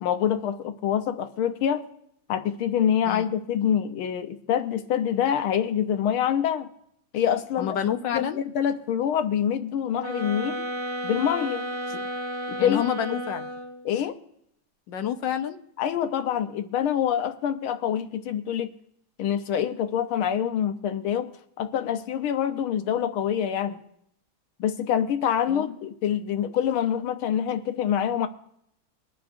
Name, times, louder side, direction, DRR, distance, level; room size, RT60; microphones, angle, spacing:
voice 1, 0.0-1.9 2.3-6.7 7.1-7.8 8.1-10.6 11.0-11.6 11.9-12.0 12.5-12.9 13.9-14.2 15.8-18.7 19.2-21.3 21.6-23.8 24.6-28.3, left 9 dB, 90° left, 1.7 m, -26 dB
voice 2, 7.6-8.4 12.6-13.5 14.9-15.6 25.5-25.7, left 9 dB, 70° left, 1.3 m, -28 dB
sound 1, 10.0-13.9, equal, 35° right, 2.4 m, -32 dB
22.0 x 11.0 x 2.6 m
omnidirectional pair, 2.3 m